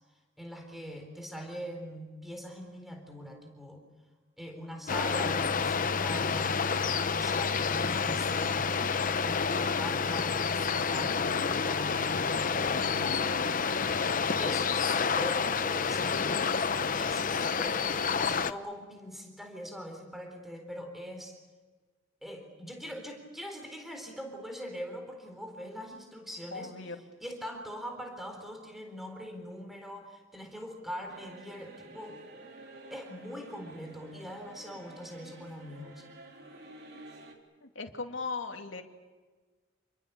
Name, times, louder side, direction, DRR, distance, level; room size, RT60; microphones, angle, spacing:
voice 1, 0.4-3.8 4.4-14.0 14.4-16.5 16.9-21.4 22.2-26.7 27.2-32.2 32.9-36.1, equal, ahead, 4 dB, 4.1 m, -42 dB
sound 1, 4.9-18.5, left 5 dB, 45° left, 0.8 m, -29 dB
voice 2, 13.0-14.1 26.5-27.0 36.9-37.0 37.6-38.8, left 4 dB, 75° left, 4 dB, 2.6 m, -39 dB
sound 2, 31.1-37.3, right 2 dB, 55° right, 3.7 m, -50 dB
28.5 x 22.5 x 7.0 m, 1.4 s
head